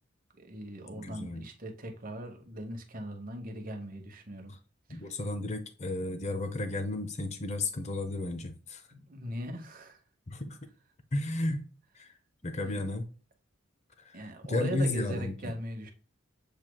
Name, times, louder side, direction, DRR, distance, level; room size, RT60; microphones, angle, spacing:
voice 1, 0.4-4.5 4.9-5.0 8.9-10.0 12.6-12.8 14.1-15.9, right 1 dB, 40° right, 3 dB, 1.0 m, -40 dB
voice 2, 0.9-1.4 4.9-8.8 10.3-10.7 11.1-11.7 12.0-12.2 12.4-13.1 14.0-15.5, left 2 dB, 35° left, 8 dB, 0.6 m, -33 dB
7.3 x 3.2 x 2.2 m, 0.38 s
head